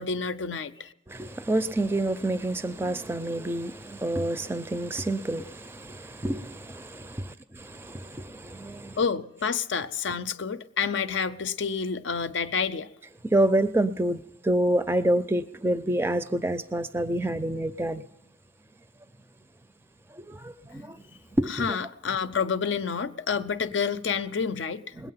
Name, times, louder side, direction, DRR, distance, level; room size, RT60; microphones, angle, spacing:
voice 1, 0.0-0.9 9.0-12.9 21.5-24.9, left 6 dB, 75° left, 0.6 m, -29 dB
voice 2, 1.1-9.0 13.2-18.1 20.1-21.0 21.4-21.8 24.9-25.1, right 1 dB, 10° right, 0.4 m, -28 dB
20.5 x 8.3 x 5.7 m
head